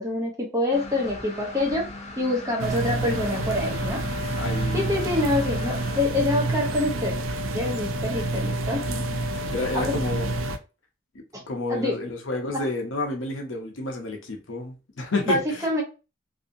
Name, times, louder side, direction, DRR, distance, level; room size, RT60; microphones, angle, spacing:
voice 1, 0.0-1.8 2.2-4.0 4.7-7.1 7.5-8.8 9.7-10.0 11.7-12.0 12.5-12.7 15.3-15.8, left 1 dB, 15° right, 0.8 m, -26 dB
sound 1, 0.7-6.0, left 2 dB, 35° left, 0.5 m, -39 dB
sound 2, 2.6-10.6, right 2 dB, 85° right, 0.4 m, -28 dB
voice 2, 4.4-4.9 8.9-10.4 11.5-15.7, left 2 dB, 70° left, 0.8 m, -30 dB
2.6 x 2.6 x 2.6 m
head